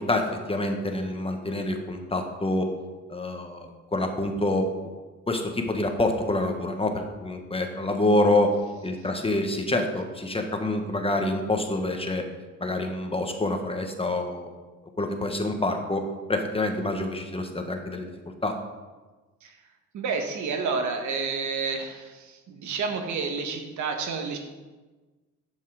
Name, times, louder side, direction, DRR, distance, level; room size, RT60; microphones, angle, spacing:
voice 1, 0.0-2.7 3.1-4.6 5.3-8.5 8.8-12.2 12.6-14.5 15.0-18.1 18.4-18.5, left 2 dB, 20° left, 4 dB, 1.3 m, -27 dB
voice 2, 19.9-24.4, right 5 dB, 70° right, 5 dB, 1.4 m, -30 dB
11.0 x 5.6 x 4.9 m, 1.3 s
cardioid pair, 90°, 30 cm